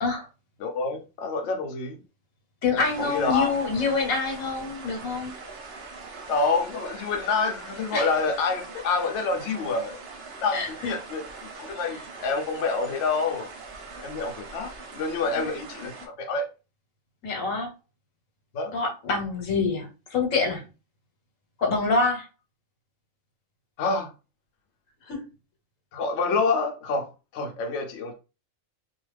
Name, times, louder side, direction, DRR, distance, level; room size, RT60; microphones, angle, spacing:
voice 1, 0.6-2.0 3.0-3.5 6.3-10.0 10.4-11.2 11.6-13.5 14.0-16.5 18.5-18.7 23.8-24.1 25.9-28.1, left 4 dB, 65° left, 0.9 m, -27 dB
voice 2, 2.6-5.3 7.9-8.1 10.5-10.9 15.3-15.5 17.2-17.7 18.7-20.6 21.6-22.3 25.1-25.2, left 4 dB, 85° left, 1.3 m, -26 dB
sound 1, 2.8-16.1, right 4 dB, 55° right, 0.8 m, -42 dB
2.4 x 2.3 x 3.2 m
omnidirectional pair, 1.4 m